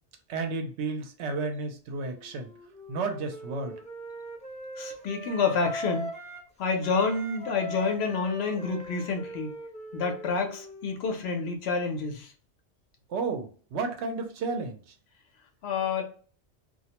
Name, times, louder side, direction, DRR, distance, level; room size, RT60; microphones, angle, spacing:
voice 1, 0.3-2.5 2.9-3.7 13.1-14.9, right 4 dB, 75° right, 5 dB, 0.9 m, -32 dB
Wind instrument woodwind instrument, 2.1-6.5 6.8-11.3, equal, 10° left, 0.5 m, -41 dB
voice 2, 4.8-6.1 6.6-9.6 9.9-12.3 15.6-16.0, left 4 dB, 70° left, 4 dB, 0.8 m, -28 dB
2.3 x 2.1 x 2.8 m, 0.40 s
omnidirectional pair, 1.2 m